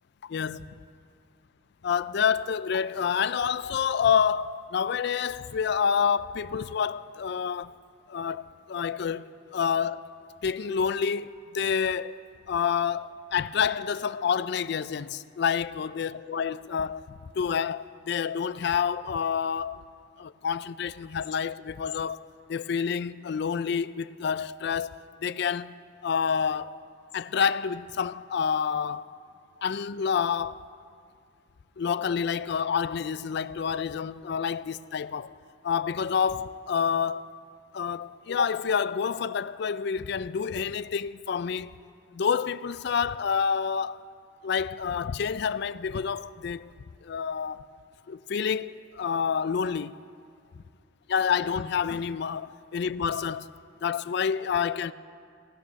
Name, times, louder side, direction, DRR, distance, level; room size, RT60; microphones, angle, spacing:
voice 1, 0.2-0.7 1.8-7.7 8.1-10.1 10.4-12.2 12.5-19.8 20.2-22.2 22.5-25.7 26.0-26.8 27.1-29.1 29.6-30.6 31.8-35.3 35.6-37.3 37.7-41.8 42.1-44.0 44.4-46.7 47.0-47.7 48.1-50.0 50.6-50.7 51.1-53.5 53.8-54.9, left 7 dB, 60° left, 0.4 m, -28 dB
17.0 x 11.5 x 6.4 m
head